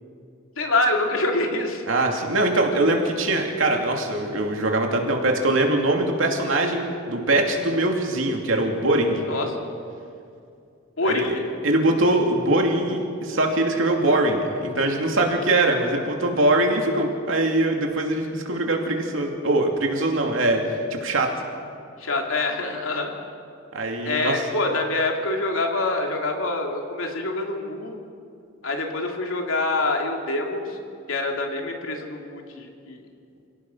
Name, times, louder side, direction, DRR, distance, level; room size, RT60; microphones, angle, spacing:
voice 1, 0.6-1.8 9.3-9.6 11.0-11.4 22.0-23.1 24.0-28.0 28.6-30.8 31.1-33.0, left 2 dB, 85° left, 2 dB, 2.8 m, -25 dB
voice 2, 1.9-9.2 11.0-11.3 11.6-20.6 20.9-21.3 23.7-24.4, right 2 dB, 75° right, 2 dB, 2.9 m, -22 dB
28.5 x 18.0 x 5.7 m, 2.4 s
head